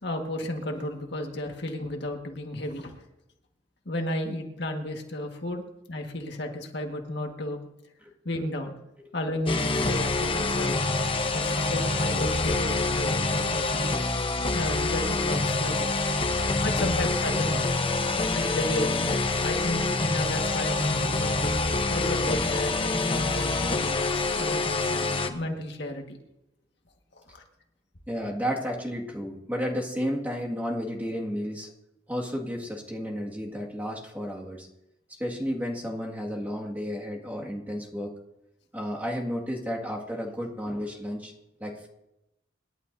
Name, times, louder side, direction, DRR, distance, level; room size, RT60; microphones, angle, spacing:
voice 1, 0.0-3.0 3.9-5.6 5.9-7.6 8.3-8.7 9.1-10.9 11.3-13.9 14.5-16.1 16.6-17.7 18.3-19.1 19.4-21.4 21.9-26.2 27.3-27.4, left 1 dB, 65° left, 2 dB, 1.8 m, -33 dB
sound 1, 9.5-25.3, left 3 dB, 30° left, 1.0 m, -26 dB
voice 2, 11.2-11.6 13.4-13.5 16.5-16.6 18.0-18.1 28.1-31.7 32.1-34.7 35.1-38.2 38.7-41.3 41.6-41.9, equal, 10° right, -3 dB, 2.1 m, -32 dB
27.0 x 11.5 x 2.7 m, 0.89 s
head